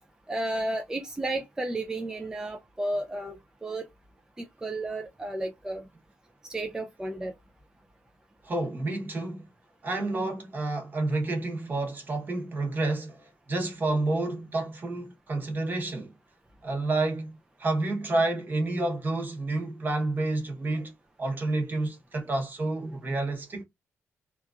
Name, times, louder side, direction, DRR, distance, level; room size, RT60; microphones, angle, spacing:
voice 1, 0.3-3.4 3.6-3.8 4.4-5.8 6.5-7.3, right 2 dB, 10° right, 0.3 m, -32 dB
voice 2, 8.4-9.5 9.8-16.1 16.6-20.9 21.2-23.6, right 2 dB, 35° right, 0.9 m, -29 dB
2.9 x 2.4 x 2.2 m
wide cardioid pair, 155°, 5 cm